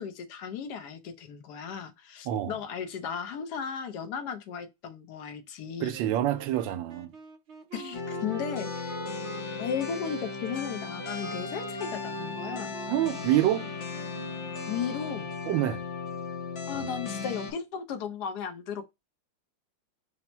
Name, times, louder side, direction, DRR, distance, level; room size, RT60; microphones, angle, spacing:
voice 1, 0.0-5.9 7.7-9.0 9.6-12.8 14.7-15.3 16.7-18.9, left 7 dB, 70° left, 1.2 m, -35 dB
voice 2, 2.2-2.6 5.8-7.1 12.9-13.7 15.5-15.8 16.7-17.0, right 13 dB, 90° right, 1.3 m, -27 dB
Wind instrument woodwind instrument, 5.9-15.4, right 5 dB, 75° right, 0.6 m, -46 dB
sound 1, 7.9-17.5, left 4 dB, 50° left, 0.9 m, -36 dB
4.2 x 2.0 x 4.3 m
omnidirectional pair, 2.0 m